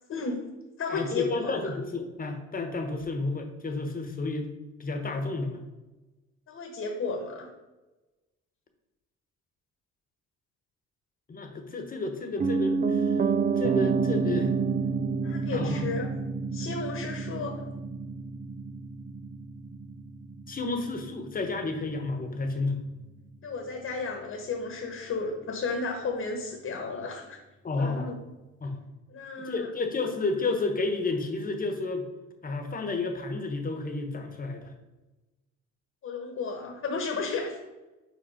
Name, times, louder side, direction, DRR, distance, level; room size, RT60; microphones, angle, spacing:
voice 1, 0.1-0.4 0.8-1.7 6.5-7.5 15.2-16.1 16.5-17.6 23.4-27.4 27.8-28.2 29.1-29.7 36.0-37.6, left 4 dB, 55° left, 3 dB, 1.3 m, -33 dB
voice 2, 0.9-4.5 4.8-5.6 11.3-13.1 13.5-14.5 15.5-15.9 20.5-22.8 27.6-28.1 28.6-28.8 29.4-32.1 32.4-34.7, left 3 dB, 30° left, 5 dB, 1.1 m, -31 dB
Piano, 12.4-22.4 22.7-22.8, right 5 dB, 30° right, 0.4 m, -29 dB
5.3 x 4.8 x 5.0 m, 1.1 s
cardioid pair, 95°, 29 cm